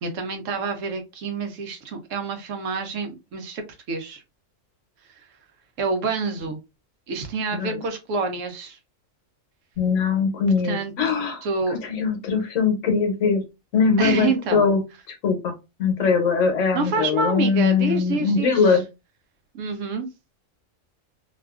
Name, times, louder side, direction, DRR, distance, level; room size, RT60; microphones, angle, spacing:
voice 1, 0.0-3.6 3.9-4.2 5.8-6.6 7.1-8.8 10.6-10.9 11.4-11.8 14.0-14.7 16.7-18.8 19.5-20.1, right 4 dB, 75° right, 6 dB, 1.0 m, -27 dB
voice 2, 9.8-11.4 11.8-13.4 13.7-14.8 15.1-15.5 15.8-18.8, left 5 dB, 75° left, 4 dB, 1.1 m, -21 dB
2.7 x 2.4 x 2.3 m, 0.25 s
omnidirectional pair, 1.4 m